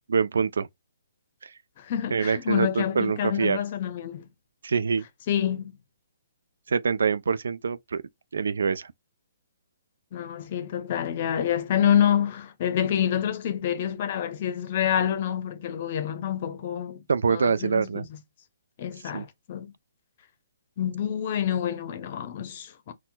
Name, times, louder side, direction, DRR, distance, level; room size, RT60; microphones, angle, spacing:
voice 1, 0.1-0.7 2.1-3.6 4.6-5.0 6.7-8.0 8.3-8.9 17.1-18.1 19.1-19.2, right 5 dB, 80° right, 0.4 m, -25 dB
voice 2, 1.8-4.3 5.3-5.8 10.1-17.0 17.3-18.2 18.8-19.7 20.8-22.9, left 9 dB, 40° left, 0.7 m, -27 dB
4.3 x 2.2 x 2.2 m
hypercardioid pair, 155°, 0 cm